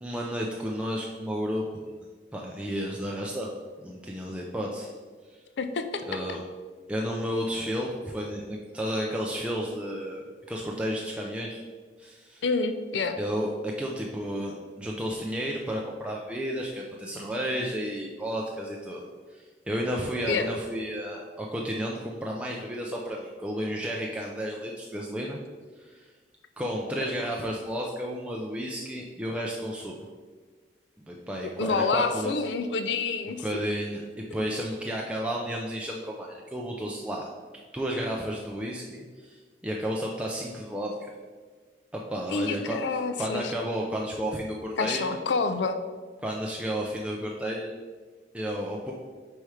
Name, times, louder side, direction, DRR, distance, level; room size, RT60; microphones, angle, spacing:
voice 1, 0.0-1.9 2.3-3.5 3.8-4.9 6.1-6.4 6.9-11.6 12.0-12.4 13.2-19.0 19.3-25.4 25.8-26.1 26.6-30.1 31.1-32.3 33.4-34.0 34.3-37.3 37.7-41.1 41.9-45.1 46.2-47.7 48.3-48.9, equal, 5° right, -2 dB, 0.4 m, -32 dB
voice 2, 5.6-6.0 12.4-13.2 20.3-20.5 31.6-33.4 42.3-43.5 44.8-45.8, left 4 dB, 75° left, 9 dB, 0.5 m, -28 dB
4.8 x 4.3 x 4.8 m, 1.5 s
head